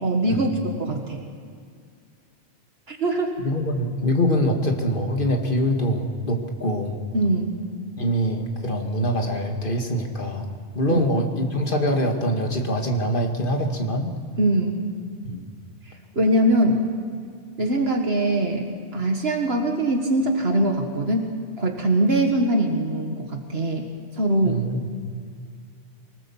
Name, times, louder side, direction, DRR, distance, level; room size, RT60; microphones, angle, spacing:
voice 1, 0.0-1.2 2.9-3.3 7.1-7.6 10.9-11.1 14.4-14.9 16.2-16.8 17.6-23.9 24.2-24.6, right 1 dB, 65° right, 3 dB, 2.0 m, -22 dB
voice 2, 3.4-7.0 8.0-10.5 10.7-14.1 15.2-15.4 24.4-24.9, equal, 50° left, 3 dB, 2.3 m, -24 dB
24.0 x 19.5 x 7.2 m, 2.2 s
omnidirectional pair, 1.1 m